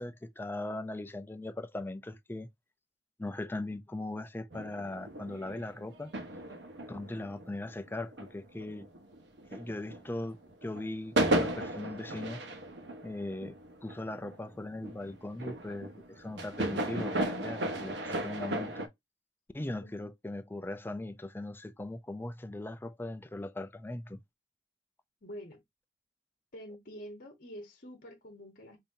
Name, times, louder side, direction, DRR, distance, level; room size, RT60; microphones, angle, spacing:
voice 1, 0.0-2.5 3.2-6.1 6.9-8.9 9.5-12.4 13.0-13.6 13.8-18.9 19.5-24.2, left 2 dB, 10° left, 0.4 m, -39 dB
sound 1, 4.5-10.2 10.4-18.9, right 1 dB, 70° right, 1.0 m, -35 dB
voice 2, 25.2-25.6 26.5-28.8, equal, 50° left, 1.1 m, -47 dB
5.3 x 2.8 x 2.6 m
head